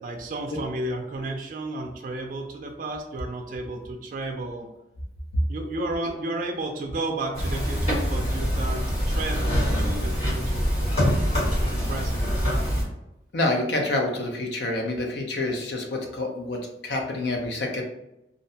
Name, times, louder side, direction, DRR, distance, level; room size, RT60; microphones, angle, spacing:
voice 1, 0.0-4.7 5.5-11.2 11.7-12.7, right 2 dB, 50° right, 3 dB, 0.3 m, -33 dB
sound 1, 7.3-12.8, equal, 40° left, 1.1 m, -24 dB
voice 2, 13.3-17.8, left 2 dB, 75° left, 2 dB, 0.5 m, -27 dB
2.5 x 2.1 x 2.6 m, 0.89 s
head